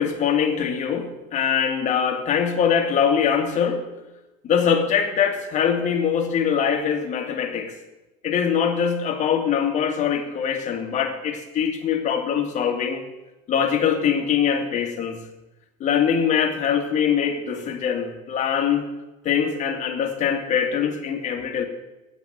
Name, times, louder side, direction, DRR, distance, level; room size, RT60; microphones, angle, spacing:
voice 1, 0.0-3.9 4.4-7.8 8.2-13.0 13.5-15.3 15.8-18.9 19.2-21.6, left 7 dB, 40° left, 5 dB, 2.0 m, -23 dB
9.3 x 8.1 x 9.1 m, 1.0 s
supercardioid pair, 110°, 18 cm